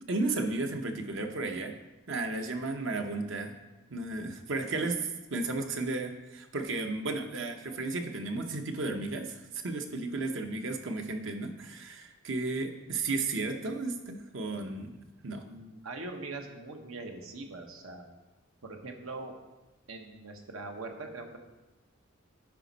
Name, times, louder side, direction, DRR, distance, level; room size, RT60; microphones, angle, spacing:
voice 1, 0.1-1.7 2.1-3.5 3.9-15.4, right 3 dB, 60° right, 5 dB, 0.9 m, -34 dB
voice 2, 15.4-18.1 18.6-19.4 19.9-21.4, right 3 dB, 85° right, 3 dB, 1.1 m, -42 dB
10.5 x 5.1 x 4.1 m, 1.1 s
head